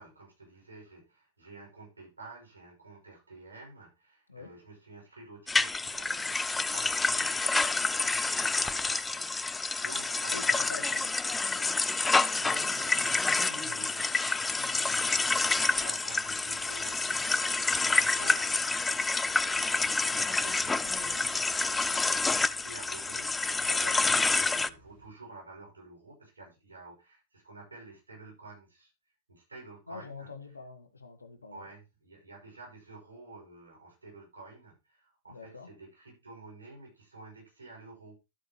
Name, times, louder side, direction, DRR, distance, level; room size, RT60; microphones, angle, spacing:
voice 1, 0.0-11.1 12.7-23.3 24.0-28.9 29.3-30.3 31.5-38.2, right 3 dB, 75° right, 6.1 m, -50 dB
sound 1, 5.5-24.7, left 3 dB, 10° left, 0.4 m, -28 dB
voice 2, 10.3-11.7 23.6-24.0 29.9-31.7 35.3-35.7, left 4 dB, 75° left, 1.4 m, -45 dB
sound 2, 12.0-25.1, right 4 dB, 55° right, 5.1 m, -56 dB
13.0 x 8.0 x 3.1 m
figure-of-eight pair, 90°, 0 cm